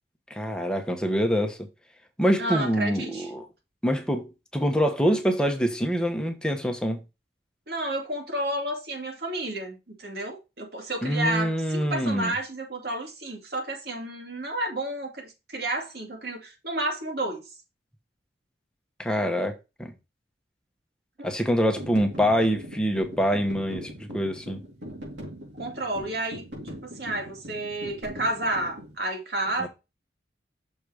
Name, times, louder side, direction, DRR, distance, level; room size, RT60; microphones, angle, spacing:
voice 1, 0.3-1.6 2.2-3.5 3.8-7.0 11.0-12.3 19.0-19.9 21.2-24.6 29.6-29.7, equal, 5° left, 1.1 m, -25 dB
voice 2, 2.4-3.3 7.7-17.5 21.2-21.3 25.6-29.7, right 1 dB, 60° right, 2.3 m, -31 dB
sound 1, 21.6-28.9, equal, 85° right, 3.5 m, -41 dB
6.5 x 4.1 x 4.9 m
head